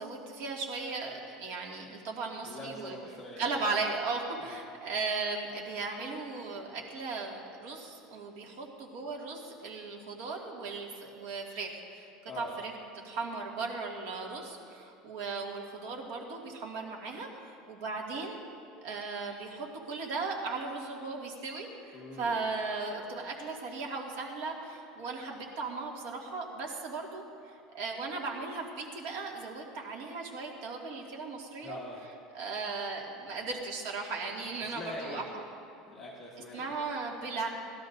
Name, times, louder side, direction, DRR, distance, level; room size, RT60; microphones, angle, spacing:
voice 1, 0.0-3.0 3.4-12.1 12.4-12.7 13.0-18.4 18.8-31.8 32.3-35.4 36.5-37.5, right 4 dB, 65° right, -1 dB, 2.1 m, -37 dB
voice 2, 2.4-3.6 4.4-4.6 12.2-12.6 21.9-22.4 31.6-32.1 34.6-35.2 35.9-36.7, left 2 dB, 20° left, -5 dB, 1.4 m, -43 dB
20.0 x 12.5 x 2.6 m, 2.5 s
cardioid pair, 165°, 0 cm